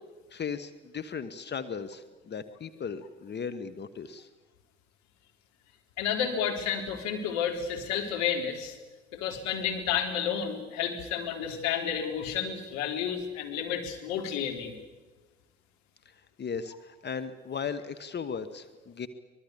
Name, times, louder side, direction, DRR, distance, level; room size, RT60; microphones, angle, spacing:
voice 1, 0.3-4.3 16.0-19.1, left 6 dB, 35° left, 12 dB, 1.4 m, -37 dB
voice 2, 6.0-8.8 9.1-14.7, left 8 dB, 60° left, 4 dB, 3.8 m, -31 dB
25.0 x 20.0 x 8.4 m, 1.2 s
figure-of-eight pair, 55°, 32 cm